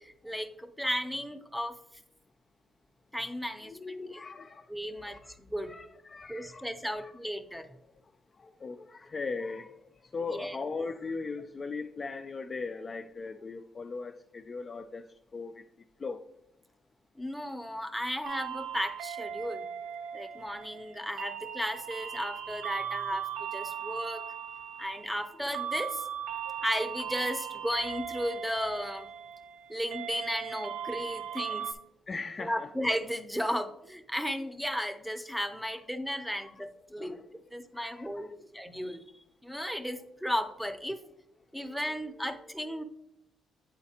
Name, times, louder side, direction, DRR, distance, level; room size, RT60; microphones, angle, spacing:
voice 1, 0.0-1.8 3.1-3.8 4.1-4.3 4.7-5.7 6.3-7.7 10.3-10.6 17.2-19.6 20.1-23.2 23.5-24.3 24.8-26.0 26.6-29.1 29.7-31.6 32.4-37.1 37.5-38.3 38.5-39.0 39.4-41.0 41.5-42.8, equal, ahead, 0.7 m, -34 dB
voice 2, 3.7-4.7 5.0-5.4 5.7-7.1 8.4-9.8 10.1-15.1 15.3-15.6 16.0-16.2 31.5-31.6 32.1-32.7 36.4-36.5 37.0-37.3 37.7-38.5 38.8-39.0 41.6-41.8 42.0-42.8, left 4 dB, 35° left, 0.3 m, -39 dB
sound 1, 18.2-31.7, right 9 dB, 80° right, 0.4 m, -38 dB
8.8 x 3.9 x 2.9 m
cardioid pair, 90°, 0 cm